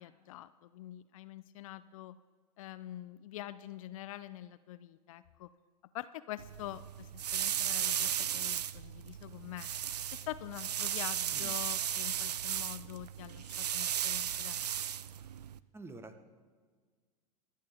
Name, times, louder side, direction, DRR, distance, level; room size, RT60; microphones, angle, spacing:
voice 1, 0.0-2.2 2.6-5.5 5.9-9.7 10.1-14.7, left 14 dB, 55° left, 14 dB, 0.5 m, -45 dB
sound 1, 6.4-15.6, right 10 dB, 75° right, 0.4 m, -35 dB
voice 2, 11.3-11.6 15.7-16.3, right 2 dB, 10° right, 10 dB, 1.1 m, -49 dB
25.0 x 9.3 x 3.4 m, 1.5 s
figure-of-eight pair, 90°, 21 cm